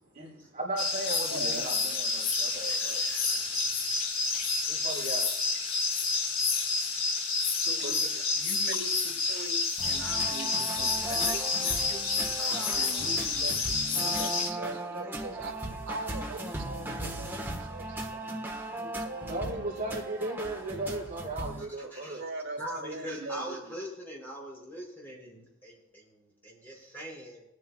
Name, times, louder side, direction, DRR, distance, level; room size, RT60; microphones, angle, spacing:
voice 1, 0.1-3.0 4.7-5.3 7.8-8.0 19.3-22.2, right 2 dB, 35° right, -6 dB, 4.0 m, -36 dB
sound 1, 0.8-14.5, left 4 dB, 80° left, 4.5 m, -29 dB
voice 2, 1.3-1.8 7.6-18.4 18.8-19.6 22.2-23.7, right 2 dB, 75° right, 2 dB, 2.5 m, -41 dB
voice 3, 2.4-3.9 21.9-22.2 22.6-27.4, equal, 10° left, -4 dB, 5.3 m, -42 dB
sound 2, 9.8-21.6, right 1 dB, 10° right, 1.3 m, -37 dB
22.5 x 9.6 x 2.3 m, 0.81 s
head